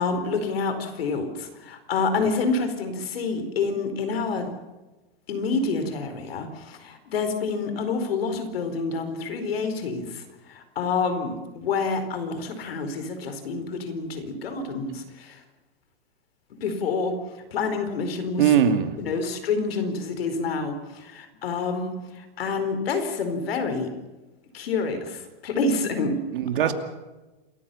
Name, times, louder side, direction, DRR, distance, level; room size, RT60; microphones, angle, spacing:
voice 1, 0.0-4.5 5.3-15.4 16.6-17.1 17.5-18.5 19.0-23.9 24.5-26.2 26.6-26.7, left 4 dB, 80° left, 9 dB, 4.6 m, -28 dB
voice 2, 18.4-18.9 26.3-26.7, right 9 dB, 60° right, 8 dB, 2.6 m, -21 dB
27.5 x 15.0 x 7.1 m, 1.2 s
supercardioid pair, 180°, 30 cm